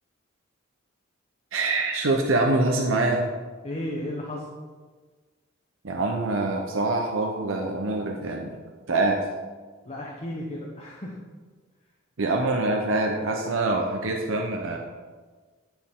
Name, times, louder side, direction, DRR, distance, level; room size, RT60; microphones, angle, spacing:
voice 1, 1.5-3.2 5.8-8.6 8.9-9.2 12.2-14.8, right 2 dB, 75° right, 1 dB, 0.7 m, -25 dB
voice 2, 3.6-4.5 9.9-11.2, left 1 dB, 30° left, -3 dB, 0.9 m, -34 dB
10.0 x 4.5 x 3.7 m, 1.4 s
head